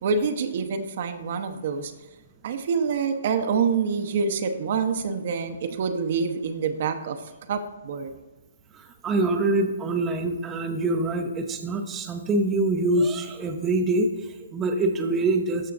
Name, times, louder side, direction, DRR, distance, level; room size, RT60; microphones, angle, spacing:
voice 1, 0.0-1.9 2.4-7.2 7.5-8.1, right 5 dB, 50° right, 7 dB, 0.8 m, -26 dB
voice 2, 8.7-15.7, right 2 dB, 15° right, 3 dB, 0.7 m, -25 dB
14.0 x 5.6 x 2.5 m, 1.1 s
hypercardioid pair, 135°, 0 cm